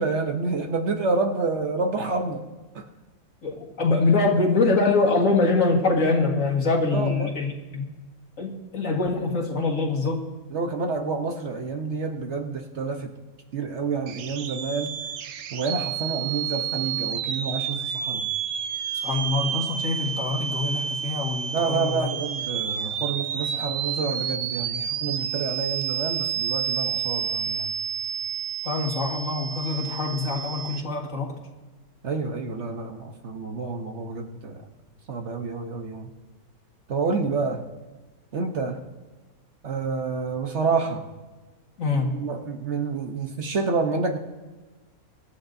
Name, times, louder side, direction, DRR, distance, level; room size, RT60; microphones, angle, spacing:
voice 1, 0.0-2.4 2.7-2.8 6.9-7.3 10.5-13.1 13.5-15.0 15.5-18.3 21.5-27.7 32.0-34.6 35.1-36.1 36.9-37.7 38.3-38.9 39.6-41.1 41.9-44.2, right 4 dB, 55° right, 4 dB, 1.1 m, -28 dB
voice 2, 3.4-7.9 8.4-10.3 19.0-22.1 28.6-31.4 41.8-42.3, left 3 dB, 60° left, 0 dB, 2.1 m, -24 dB
sound 1, 14.1-30.8, right 8 dB, 75° right, 1.1 m, -30 dB
24.5 x 11.5 x 2.6 m, 1.3 s
omnidirectional pair, 1.6 m